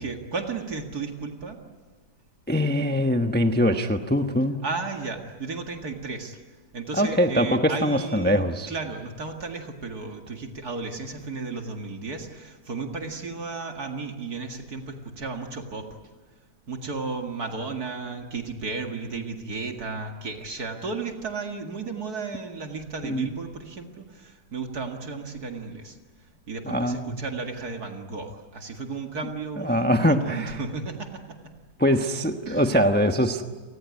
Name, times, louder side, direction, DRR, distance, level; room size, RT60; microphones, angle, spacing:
voice 1, 0.0-1.6 4.6-6.4 6.7-16.0 16.7-26.0 26.5-31.5 32.5-32.6, right 4 dB, 65° right, 3 dB, 2.5 m, -34 dB
voice 2, 2.5-4.6 6.9-8.7 23.0-23.3 26.7-27.2 29.6-30.6 31.8-33.4, equal, 5° left, 6 dB, 0.9 m, -23 dB
30.0 x 19.0 x 9.6 m, 1.3 s
omnidirectional pair, 1.8 m